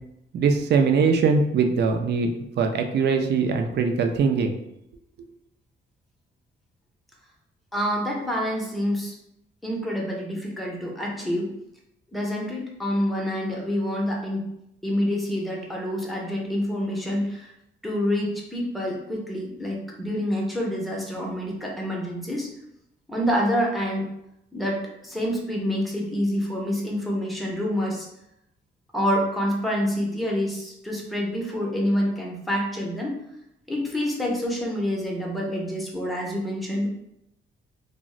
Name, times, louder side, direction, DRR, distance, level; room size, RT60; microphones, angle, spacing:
voice 1, 0.3-2.3 2.6-4.6, right 5 dB, 55° right, 5 dB, 0.4 m, -21 dB
voice 2, 7.7-9.1 9.6-11.5 12.1-14.5 14.8-17.5 17.8-22.5 23.1-24.1 24.5-28.1 28.9-33.2 33.7-36.9, equal, ahead, -2 dB, 0.6 m, -27 dB
2.4 x 2.0 x 3.6 m, 0.81 s
cardioid pair, 120°, 21 cm